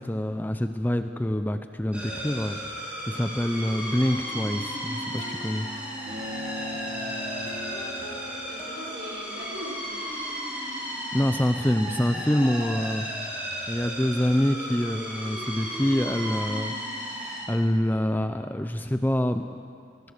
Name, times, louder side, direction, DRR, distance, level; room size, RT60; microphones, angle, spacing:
voice 1, 0.0-5.7 11.1-13.1 13.7-16.7 17.5-19.4, equal, 10° left, 8 dB, 0.6 m, -26 dB
sound 1, 1.9-17.4, equal, 5° right, 5.8 m, -35 dB
sound 2, 4.0-9.8, equal, 30° left, 1.6 m, -44 dB
voice 2, 5.6-6.7 7.6-10.1 12.2-12.7, right 1 dB, 65° right, 0 dB, 5.5 m, -43 dB
sound 3, 6.1-8.6, left 1 dB, 45° right, 2.3 m, -38 dB
25.0 x 20.0 x 6.7 m, 2.2 s
head